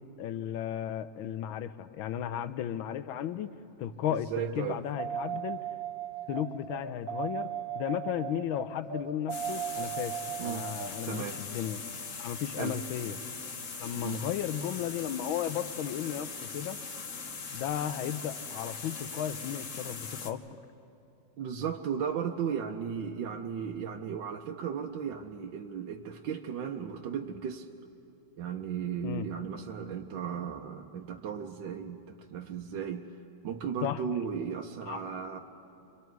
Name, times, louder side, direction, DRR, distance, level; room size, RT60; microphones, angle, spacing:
voice 1, 0.2-4.3 4.6-5.6 6.3-7.5 7.7-11.8 12.2-13.2 13.8-16.8 17.5-20.4 29.0-29.3 33.8-34.0 34.9-35.0, left 10 dB, 85° left, 12 dB, 1.5 m, -34 dB
voice 2, 4.1-4.8 10.4-10.7 11.1-11.4 12.6-12.8 14.0-14.2 21.4-27.7 28.4-33.1 33.4-35.4, right 7 dB, 70° right, 3 dB, 1.4 m, -35 dB
sound 1, 5.0-13.4 16.1-16.2, right 9 dB, 20° right, 0.9 m, -38 dB
sound 2, 9.3-20.3, left 5 dB, 45° left, 1.2 m, -41 dB
29.0 x 24.5 x 4.6 m, 2.7 s
omnidirectional pair, 2.2 m